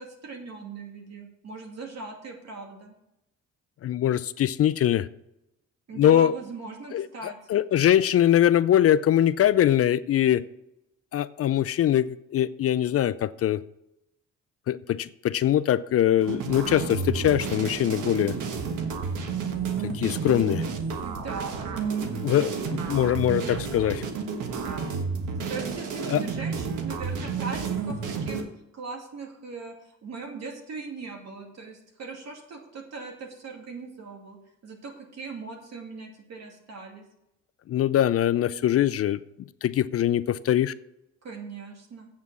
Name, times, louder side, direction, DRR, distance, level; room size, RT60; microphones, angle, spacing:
voice 1, 0.0-2.9 5.9-7.4 21.0-22.6 24.5-25.0 25.5-28.4 28.7-37.0 41.2-42.1, right 4 dB, 60° right, 1 dB, 2.6 m, -40 dB
voice 2, 3.8-5.1 6.0-6.3 6.9-10.4 11.1-12.1 12.3-13.6 14.7-18.3 19.9-20.6 22.2-24.0 26.1-26.2 37.7-39.2 39.6-40.7, left 11 dB, 50° left, 15 dB, 0.5 m, -22 dB
sound 1, 16.2-28.4, right 5 dB, 85° right, 1.4 m, -31 dB
8.3 x 7.3 x 6.2 m, 0.84 s
cardioid pair, 90°, 30 cm